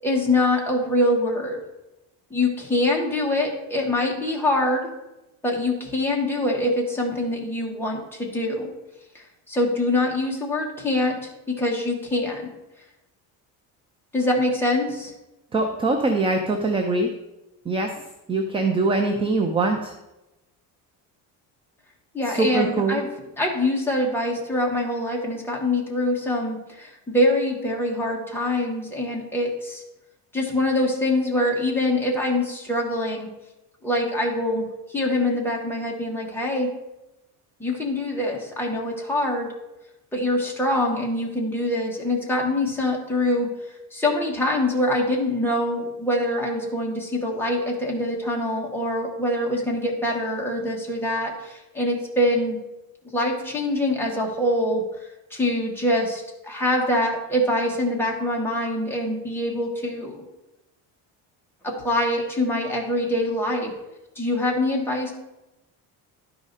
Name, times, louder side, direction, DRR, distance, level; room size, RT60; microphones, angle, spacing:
voice 1, 0.0-1.6 2.3-4.9 5.4-8.7 9.5-12.5 14.1-15.1 22.1-23.1 23.4-29.8 30.3-33.3 33.8-34.7 34.9-36.7 37.6-39.5 40.1-43.5 43.9-52.6 53.1-54.8 55.3-60.2 61.6-63.7 64.2-65.1, left 1 dB, 5° left, -2 dB, 1.3 m, -24 dB
voice 2, 15.5-17.1 17.7-17.9 18.3-19.9 22.3-23.0, right 3 dB, 15° right, 4 dB, 0.4 m, -23 dB
11.5 x 4.9 x 4.0 m, 0.97 s
cardioid pair, 160°, 39 cm